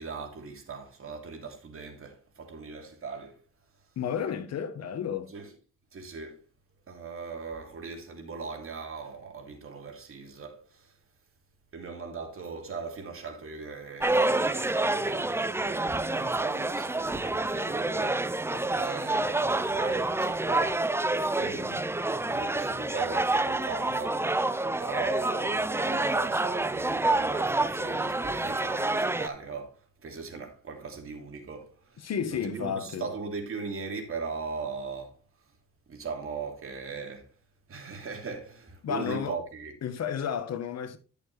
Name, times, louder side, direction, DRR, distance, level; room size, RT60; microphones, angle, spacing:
voice 1, 0.0-3.4 5.3-5.5 5.9-6.4 6.9-11.0 11.7-18.2 18.5-20.9 21.2-21.7 22.3-24.2 24.8-35.2 35.9-37.3 37.7-39.7, right 4 dB, 45° right, 3.0 m, -39 dB
voice 2, 4.0-5.3 21.4-21.9 32.0-33.1 38.8-39.4 39.8-41.0, left 7 dB, 60° left, 1.2 m, -32 dB
sound 1, 14.0-29.3, right 2 dB, 10° right, 0.5 m, -28 dB
11.0 x 6.9 x 3.3 m
cardioid pair, 90°, 30 cm